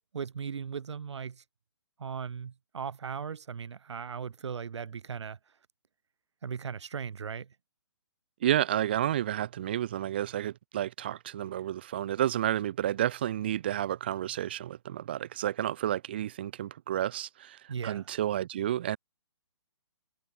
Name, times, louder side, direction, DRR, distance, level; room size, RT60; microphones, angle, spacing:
voice 1, 0.1-1.4 2.0-5.4 6.4-7.6 17.7-18.1, right 6 dB, 85° right, 0.7 m, -38 dB
voice 2, 8.4-19.0, right 12 dB, 25° right, 0.3 m, -31 dB
hypercardioid pair, 165°, 14 cm